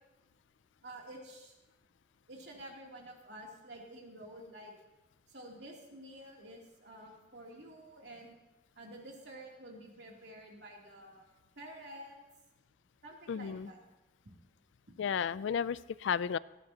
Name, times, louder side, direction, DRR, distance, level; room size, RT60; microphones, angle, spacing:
voice 1, 0.8-1.5 2.3-4.7 5.3-8.3 8.7-12.2 13.0-13.8, right 1 dB, 65° right, -1 dB, 2.9 m, -50 dB
voice 2, 13.3-13.7 15.0-16.4, left 7 dB, 85° left, 18 dB, 0.4 m, -33 dB
19.0 x 15.0 x 2.9 m, 1.0 s
head